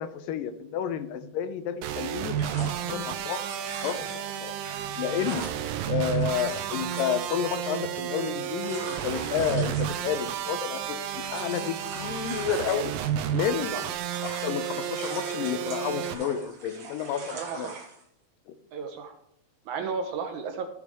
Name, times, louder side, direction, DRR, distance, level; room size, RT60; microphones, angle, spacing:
voice 1, 0.0-3.4 3.8-4.1 4.4-4.6 5.0-5.5 5.9-12.9 13.3-13.8 14.2-17.7 18.5-18.6, left 8 dB, 85° left, 11 dB, 2.4 m, -31 dB
sound 1, 1.8-16.1, right 10 dB, 90° right, 2.4 m, -32 dB
sound 2, 2.3-13.4 13.7-18.0, right 3 dB, 45° right, 1.5 m, -43 dB
voice 2, 17.3-17.8 18.7-19.1 19.7-20.7, right 5 dB, 70° right, 6 dB, 2.1 m, -33 dB
15.0 x 5.1 x 4.8 m, 0.75 s
omnidirectional pair, 4.0 m